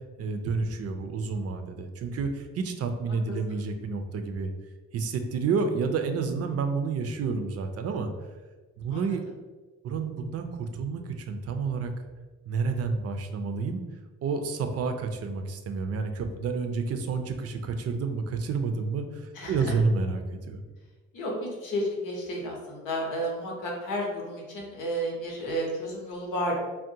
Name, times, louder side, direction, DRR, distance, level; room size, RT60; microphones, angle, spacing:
voice 1, 0.2-4.5 4.9-8.1 8.8-9.4 9.8-11.9 12.5-13.8 14.2-20.6, right 4 dB, 55° right, 6 dB, 0.4 m, -30 dB
voice 2, 21.1-26.6, equal, 85° left, -1 dB, 0.9 m, -32 dB
3.5 x 2.2 x 2.7 m, 1.3 s
cardioid pair, 90°, 30 cm